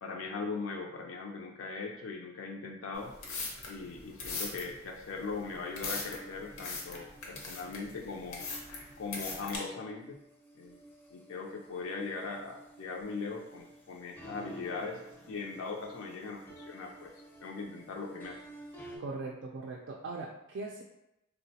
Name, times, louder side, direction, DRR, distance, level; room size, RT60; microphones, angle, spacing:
voice 1, 0.0-3.1 3.7-8.4 9.0-10.2 10.5-10.8 11.1-15.0 15.3-17.1 17.4-18.4, left 4 dB, 65° left, 1 dB, 0.4 m, -40 dB
sound 1, 2.9-9.6, left 3 dB, 90° left, 0.7 m, -40 dB
sound 2, 5.6-19.0, right 1 dB, 10° left, 0.5 m, -52 dB
voice 2, 19.0-20.8, right 3 dB, 55° right, -2 dB, 0.3 m, -40 dB
3.7 x 2.1 x 2.7 m, 0.88 s
head